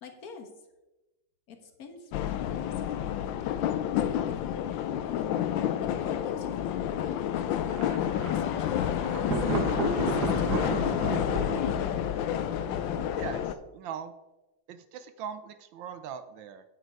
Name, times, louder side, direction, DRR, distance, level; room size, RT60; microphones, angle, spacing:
voice 1, 0.0-0.5 1.5-4.7 5.0-5.4 5.8-7.6 8.3-11.2, left 6 dB, 50° left, 5 dB, 1.5 m, -46 dB
sound 1, 2.1-13.5, left 10 dB, 75° left, 1.2 m, -29 dB
Thunder, 7.7-13.5, right 4 dB, 55° right, 1.5 m, -34 dB
voice 2, 13.2-14.1 14.7-16.6, right 8 dB, 75° right, 11 dB, 1.2 m, -40 dB
9.1 x 7.8 x 4.7 m, 1.0 s
omnidirectional pair, 2.3 m